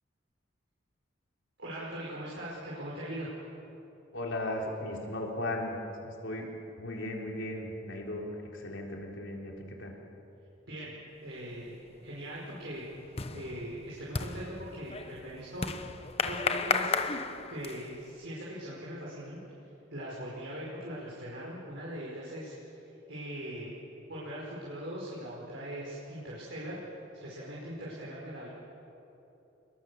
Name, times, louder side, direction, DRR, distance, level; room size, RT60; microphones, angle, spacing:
voice 1, 1.6-3.3 10.7-10.9 11.2-12.9 13.3-17.0 17.5-19.4 19.9-22.5 23.1-23.7 24.1-26.8 27.2-28.5, right 1 dB, 65° right, -6 dB, 5.3 m, -40 dB
voice 2, 4.1-5.8 6.0-6.5 6.8-9.5 9.8-9.9, left 1 dB, 70° left, 0 dB, 3.9 m, -36 dB
sound 1, 11.5-11.9 12.2-18.0, left 4 dB, 30° left, 0.9 m, -34 dB
27.5 x 22.0 x 7.1 m, 3.0 s
head